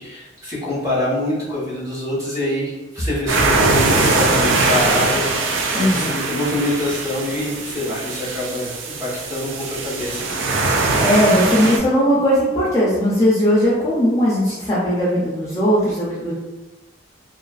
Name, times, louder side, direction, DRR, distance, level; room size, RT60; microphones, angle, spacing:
voice 1, 0.0-8.7 9.0-10.6, left 1 dB, 20° right, -9 dB, 1.0 m, -25 dB
sound 1, 3.3-11.8, right 3 dB, 85° right, 0.4 m, -21 dB
voice 2, 5.7-6.1 10.9-16.3, equal, 15° left, -8 dB, 0.5 m, -18 dB
2.4 x 2.4 x 2.4 m, 1.1 s
head